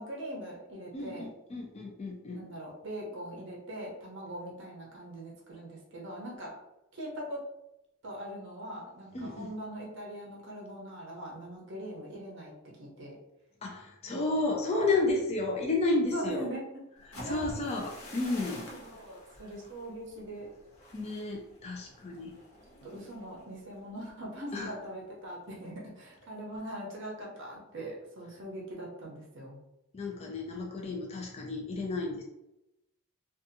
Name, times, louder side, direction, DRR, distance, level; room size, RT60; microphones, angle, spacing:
voice 1, 0.0-1.3 2.3-6.6 6.9-7.4 8.0-12.5 12.8-13.2 16.1-16.8 17.2-17.4 18.7-20.5 22.8-29.6, right 1 dB, 55° right, -3 dB, 0.6 m, -41 dB
voice 2, 0.9-2.5 9.1-9.5 13.6-16.5 17.2-18.7 20.9-22.3 24.5-24.7 29.9-32.2, left 2 dB, 30° left, -1 dB, 0.3 m, -32 dB
sound 1, 17.0-24.8 25.2-25.5 25.9-26.3, equal, 60° left, 0.7 m, -48 dB
2.6 x 2.3 x 2.6 m, 0.91 s
head